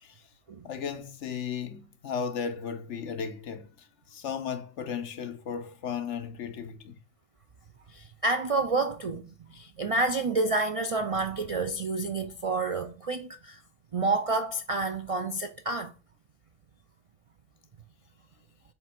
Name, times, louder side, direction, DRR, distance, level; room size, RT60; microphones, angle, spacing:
voice 1, 0.6-7.0, left 7 dB, 70° left, 1.2 m, -35 dB
voice 2, 7.9-9.2 9.5-13.6 13.9-15.9, right 3 dB, 55° right, 0.3 m, -29 dB
7.6 x 3.4 x 5.9 m
omnidirectional pair, 1.3 m